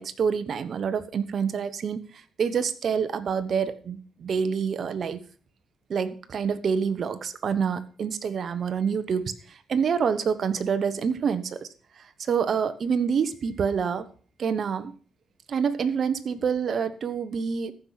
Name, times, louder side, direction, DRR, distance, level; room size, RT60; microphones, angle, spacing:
voice 1, 0.0-2.0 2.4-5.2 5.9-9.3 9.7-11.7 12.2-14.1 14.4-14.9 15.5-17.7, right 6 dB, 55° right, 12 dB, 1.2 m, -27 dB
14.5 x 5.9 x 6.5 m, 0.42 s
cardioid pair, 90°, 0 cm